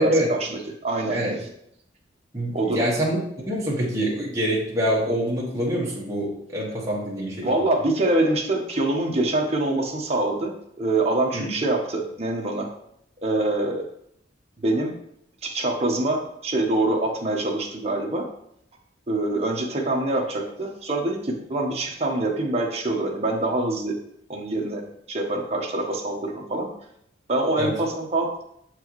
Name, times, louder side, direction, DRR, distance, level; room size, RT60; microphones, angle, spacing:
voice 1, 0.0-1.2 2.5-2.9 7.4-10.5 10.8-12.7 13.2-13.8 14.6-14.9 15.4-18.3 19.1-24.0 24.3-24.8 25.1-26.7 27.3-28.4, right 2 dB, 35° right, 0 dB, 1.0 m, -25 dB
voice 2, 1.1-1.4 2.3-3.2 3.5-7.5 11.3-11.5 27.6-27.7, equal, 20° right, -6 dB, 1.6 m, -25 dB
7.0 x 4.6 x 3.1 m, 0.73 s
head